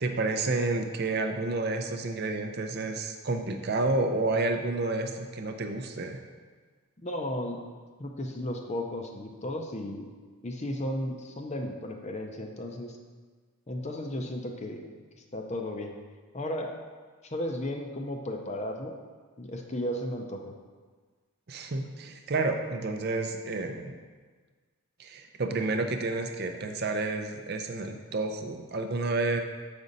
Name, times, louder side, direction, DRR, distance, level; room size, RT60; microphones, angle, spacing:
voice 1, 0.0-6.2 21.5-24.0 25.0-29.4, right 3 dB, 45° right, 5 dB, 0.5 m, -30 dB
voice 2, 7.0-7.6 8.0-10.1 10.4-13.0 13.7-14.9 15.2-15.9 16.3-16.8 17.2-19.0 19.4-20.4, left 1 dB, 30° left, 3 dB, 0.6 m, -34 dB
7.3 x 5.2 x 4.0 m, 1.5 s
head